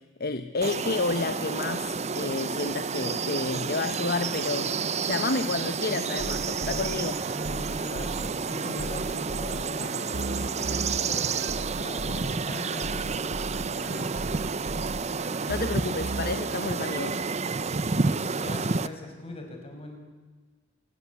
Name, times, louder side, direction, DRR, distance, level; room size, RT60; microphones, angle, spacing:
voice 1, 0.2-7.2 15.5-17.2, left 3 dB, 50° left, 10 dB, 1.1 m, -30 dB
sound 1, 0.6-18.9, right 4 dB, 35° right, 0.8 m, -30 dB
sound 2, 6.2-16.7, right 2 dB, 70° right, 1.2 m, -37 dB
voice 2, 7.5-14.1 17.7-20.0, left 1 dB, 30° left, 3 dB, 6.0 m, -41 dB
27.0 x 20.0 x 8.4 m, 1.4 s
head